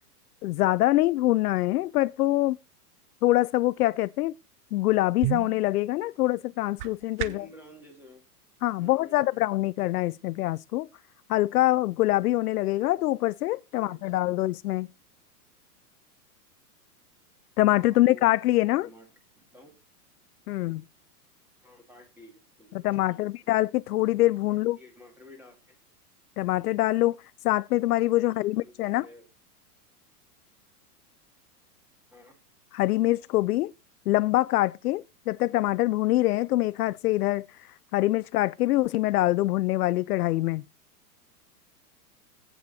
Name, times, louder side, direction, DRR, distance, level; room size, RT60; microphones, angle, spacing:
voice 1, 0.4-2.6 3.2-4.3 4.7-7.5 8.6-10.9 11.3-14.9 17.6-18.9 20.5-20.8 22.8-24.8 26.4-29.1 32.7-33.7 34.1-37.5 37.9-40.6, left 17 dB, 70° left, 0.5 m, -24 dB
sound 1, 4.8-7.6, right 14 dB, 30° right, 0.6 m, -35 dB
voice 2, 7.2-8.2 8.8-9.4 13.8-14.5 17.8-18.2 18.7-19.1 19.3-19.7 21.6-22.8 23.2-23.3 24.5-25.8 28.2-29.3 32.1-32.4, left 1 dB, 5° right, 2.4 m, -52 dB
9.4 x 8.6 x 4.2 m
hypercardioid pair, 150°, 47 cm